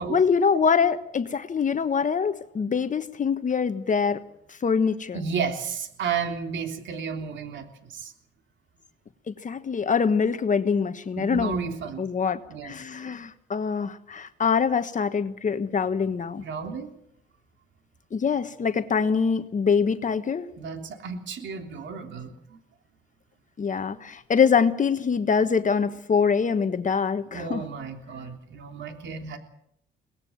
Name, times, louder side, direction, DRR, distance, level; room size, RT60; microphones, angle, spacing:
voice 1, 0.1-4.2 4.5-5.2 9.3-11.5 12.0-16.4 18.1-20.5 23.6-27.6, left 6 dB, 40° left, 10 dB, 1.3 m, -24 dB
voice 2, 5.1-8.1 11.2-12.0 12.5-12.7 16.4-16.9 20.6-22.6 27.3-29.4, right 6 dB, 65° right, 5 dB, 3.4 m, -32 dB
23.5 x 18.5 x 7.2 m, 0.71 s
cardioid pair, 90°, 20 cm